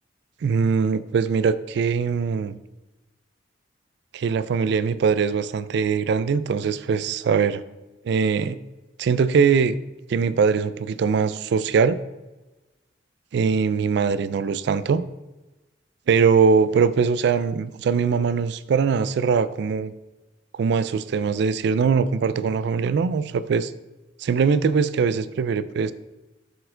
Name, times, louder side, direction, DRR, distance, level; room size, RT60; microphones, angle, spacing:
voice 1, 0.4-2.6 4.1-7.6 8.1-8.6 9.0-9.8 10.1-12.0 13.3-15.0 16.1-19.9 20.5-23.7 24.2-25.9, right 5 dB, 65° right, 15 dB, 0.3 m, -21 dB
6.6 x 4.3 x 3.8 m, 1.1 s
head